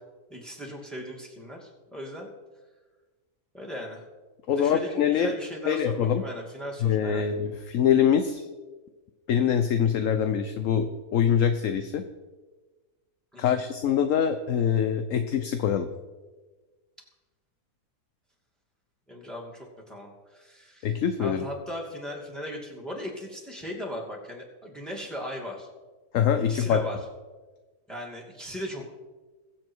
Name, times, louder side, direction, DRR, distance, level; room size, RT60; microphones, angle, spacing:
voice 1, 0.3-2.3 3.5-4.0 4.5-7.2 13.3-13.6 19.1-20.9 21.2-25.7 26.5-27.0 27.9-29.0, equal, ahead, -2 dB, 2.5 m, -38 dB
voice 2, 4.5-5.3 5.6-6.2 6.8-8.5 9.3-12.0 13.4-15.9 20.8-21.4 26.1-26.8, left 8 dB, 65° left, 8 dB, 1.1 m, -24 dB
22.5 x 7.6 x 4.6 m, 1.3 s
omnidirectional pair, 1.6 m